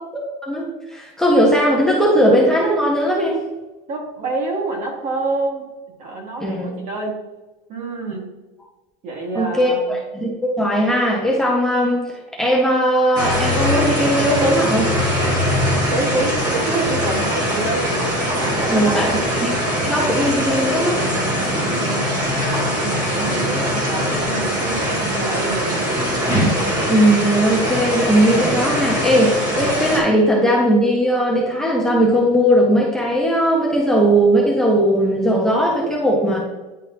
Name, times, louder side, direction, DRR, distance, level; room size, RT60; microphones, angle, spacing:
voice 1, 0.4-3.4 6.4-6.7 9.3-12.0 12.4-14.9 18.7-19.1 19.3-19.5 19.8-21.0 26.9-36.4, equal, 5° left, -4 dB, 0.9 m, -18 dB
voice 2, 3.9-5.7 6.0-7.2 7.7-8.3 9.0-10.0 15.9-17.9 18.4-19.4 21.9-22.1 22.6-25.8, right 2 dB, 40° right, 0 dB, 1.7 m, -27 dB
sound 1, 13.2-30.0, equal, 20° right, 1.8 m, -21 dB
10.0 x 3.9 x 2.8 m, 1.1 s
cardioid pair, 155°, 18 cm